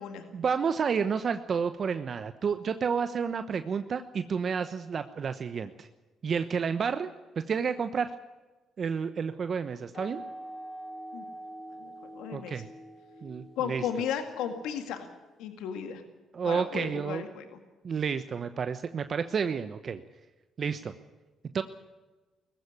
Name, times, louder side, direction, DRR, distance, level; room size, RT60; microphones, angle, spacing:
voice 1, 0.3-5.9 6.2-7.1 7.4-8.1 8.8-10.2 12.3-12.7 13.2-13.8 16.3-17.2 17.8-20.0 20.6-20.9 21.5-21.6, right 6 dB, 50° right, 10 dB, 1.0 m, -30 dB
sound 1, 9.9-15.4, right 1 dB, 45° left, 6.7 m, -45 dB
voice 2, 11.8-12.6 13.6-15.1 15.4-16.0 16.5-17.6, left 8 dB, 80° left, 7 dB, 2.0 m, -35 dB
19.5 x 15.0 x 9.9 m, 1.2 s
supercardioid pair, 65°, 0 cm